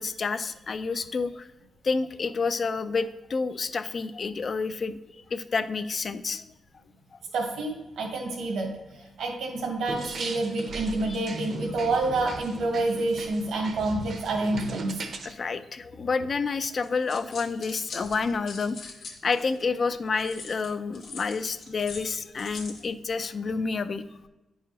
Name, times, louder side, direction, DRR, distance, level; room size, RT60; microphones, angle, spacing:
voice 1, 0.0-1.5 1.8-5.0 5.3-6.5 11.1-11.2 15.2-18.9 19.2-24.0, left 4 dB, 40° left, 12 dB, 0.4 m, -29 dB
voice 2, 7.3-8.8 9.2-15.0, right 2 dB, 90° right, 1 dB, 1.5 m, -28 dB
sound 1, 9.9-15.3, right 3 dB, 55° right, 0.7 m, -38 dB
sound 2, 16.8-19.6 20.2-22.9, left 4 dB, 70° left, 1.3 m, -43 dB
9.8 x 4.7 x 2.9 m, 1.0 s
cardioid pair, 120°, 0 cm